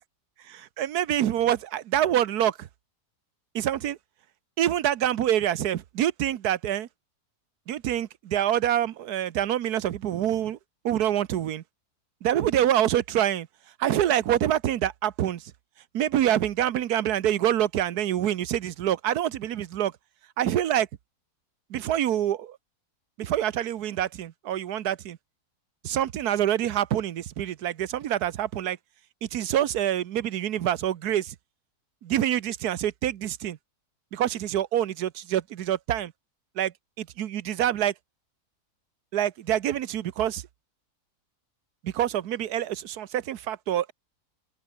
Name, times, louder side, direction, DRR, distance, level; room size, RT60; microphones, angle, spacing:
voice 1, 0.4-2.7 3.5-4.0 4.6-6.9 7.7-10.6 10.8-11.6 12.2-13.5 13.8-15.5 15.9-19.9 20.4-20.9 21.7-22.6 23.2-25.2 25.8-28.8 29.2-31.3 32.0-33.6 34.1-36.1 36.5-37.9 39.1-40.4 41.8-43.9, right 11 dB, 80° right, 1.4 m, -26 dB
open air
omnidirectional pair, 1.7 m